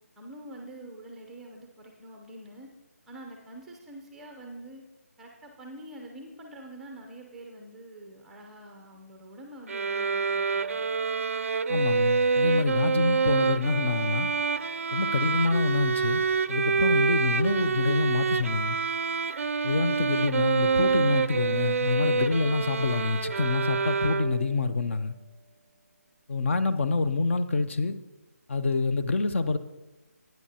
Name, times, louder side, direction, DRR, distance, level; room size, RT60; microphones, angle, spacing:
voice 1, 0.2-2.7 3.1-4.8 5.2-10.9, right 1 dB, 5° right, 2 dB, 0.5 m, -45 dB
sound 1, 9.7-24.6, right 5 dB, 55° right, 0.4 m, -27 dB
voice 2, 11.7-14.3 14.9-16.2 16.5-18.8 19.6-25.1 26.3-28.0 28.5-29.6, left 4 dB, 50° left, 10 dB, 0.6 m, -26 dB
12.5 x 9.2 x 2.8 m, 1.1 s
figure-of-eight pair, 160°, 9 cm